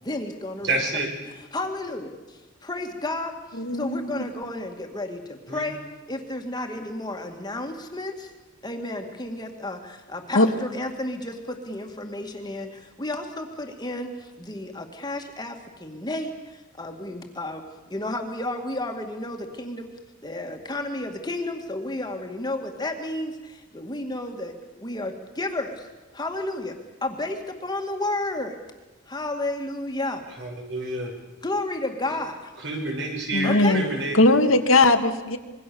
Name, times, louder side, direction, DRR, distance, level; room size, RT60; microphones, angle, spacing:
voice 1, 0.0-0.7 1.5-5.8 6.1-8.3 8.6-17.6 17.9-19.9 20.2-25.9 26.1-28.6 29.1-30.2 31.4-32.5 33.4-33.8, left 2 dB, 20° left, 4 dB, 2.1 m, -32 dB
voice 2, 0.6-1.1 5.5-5.6 30.4-31.1 32.6-34.2, right 2 dB, 60° right, 1 dB, 6.4 m, -28 dB
voice 3, 3.6-4.2 10.3-10.5 33.3-33.8 34.1-35.4, left 2 dB, 85° left, 6 dB, 1.9 m, -19 dB
26.0 x 22.0 x 7.0 m, 1.2 s
head